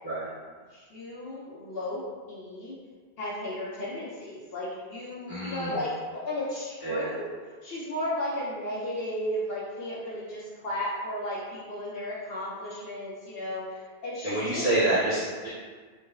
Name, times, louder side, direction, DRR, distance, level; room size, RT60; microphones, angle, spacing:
voice 1, 0.7-2.7 3.2-7.3 7.6-14.7, left 1 dB, 70° left, -8 dB, 0.9 m, -34 dB
voice 2, 5.3-5.7 6.8-7.1 14.2-15.5, right 2 dB, 40° left, -16 dB, 1.6 m, -27 dB
5.0 x 2.0 x 2.4 m, 1.5 s
omnidirectional pair, 1.1 m